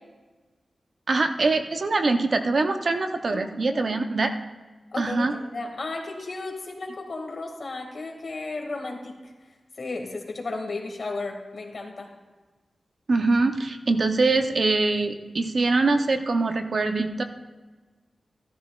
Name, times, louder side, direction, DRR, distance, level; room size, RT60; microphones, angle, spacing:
voice 1, 1.1-4.3 5.0-5.3 13.1-17.2, right 3 dB, 55° right, 6 dB, 0.7 m, -23 dB
voice 2, 3.3-3.9 4.9-9.3 9.8-12.1, left 3 dB, 55° left, 1 dB, 2.0 m, -34 dB
15.0 x 13.5 x 2.4 m, 1.3 s
wide cardioid pair, 115°, 0 cm